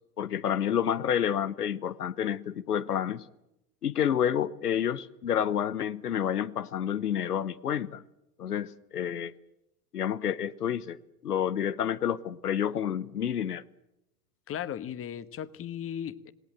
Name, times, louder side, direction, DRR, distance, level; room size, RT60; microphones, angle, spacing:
voice 1, 0.2-3.2 3.8-8.0 8.4-9.3 9.9-13.6, left 9 dB, 90° left, 0.9 m, -29 dB
voice 2, 14.5-16.3, left 9 dB, 30° left, 1.3 m, -36 dB
27.5 x 19.5 x 7.8 m
hypercardioid pair, 90°, 45 cm